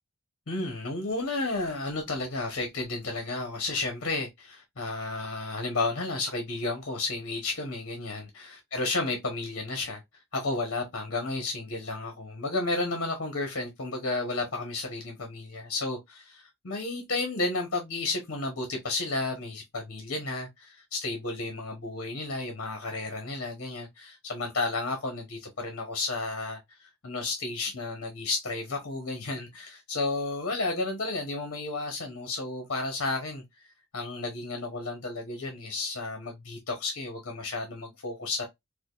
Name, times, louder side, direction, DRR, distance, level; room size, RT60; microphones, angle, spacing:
voice 1, 0.5-10.0 10.3-33.4 33.9-38.5, left 3 dB, 55° left, 1.1 m, -32 dB
4.9 x 2.3 x 2.4 m
head